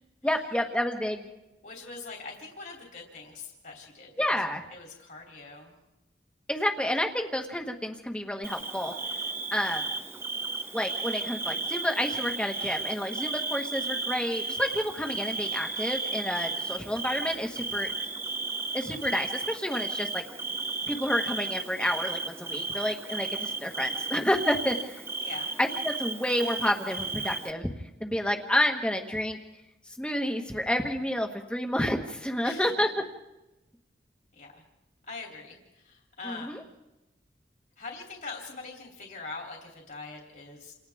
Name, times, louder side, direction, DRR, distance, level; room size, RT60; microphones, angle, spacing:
voice 1, 0.2-1.3 4.2-4.6 6.5-8.9 9.5-9.9 10.7-17.9 18.7-20.2 20.9-25.0 25.6-27.7 28.0-29.4 30.0-32.9 36.2-36.6, left 1 dB, 5° left, 3 dB, 1.5 m, -29 dB
voice 2, 1.6-5.8 25.2-25.6 32.4-32.9 34.3-34.6 35.1-36.7 37.8-40.7, left 3 dB, 50° left, 0 dB, 3.4 m, -43 dB
Bird / Cricket, 8.4-27.5, right 3 dB, 15° right, 0.8 m, -34 dB
29.0 x 28.0 x 3.6 m, 0.97 s
head